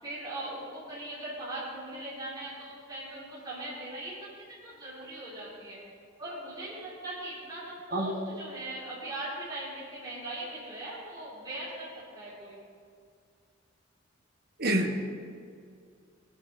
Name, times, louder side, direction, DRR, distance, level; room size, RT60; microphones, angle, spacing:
voice 1, 0.0-4.3 4.6-5.8 6.2-12.6, right 1 dB, 20° right, -10 dB, 3.6 m, -40 dB
voice 2, 14.6-15.1, right 1 dB, 50° right, 2 dB, 1.4 m, -27 dB
21.0 x 8.8 x 4.1 m, 2.2 s
head